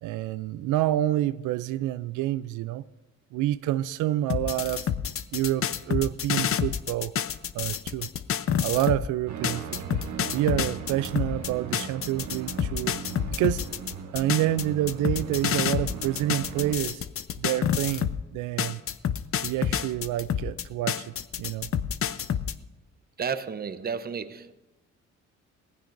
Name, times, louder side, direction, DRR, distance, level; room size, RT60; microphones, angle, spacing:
voice 1, 0.0-2.8 3.3-4.9 5.3-7.1 7.5-8.1 8.6-10.0 10.3-13.0 13.3-13.6 14.1-17.0 17.4-18.8 19.4-21.1 21.4-21.7, right 14 dB, 85° right, 0.5 m, -28 dB
sound 1, 4.3-9.1 9.4-18.2 18.6-22.5, left 8 dB, 45° left, 0.6 m, -28 dB
sound 2, 9.3-16.8, right 7 dB, 65° right, 1.5 m, -38 dB
voice 2, 23.2-24.5, right 6 dB, 30° right, 0.8 m, -32 dB
19.0 x 15.5 x 2.6 m
cardioid pair, 90°, 30 cm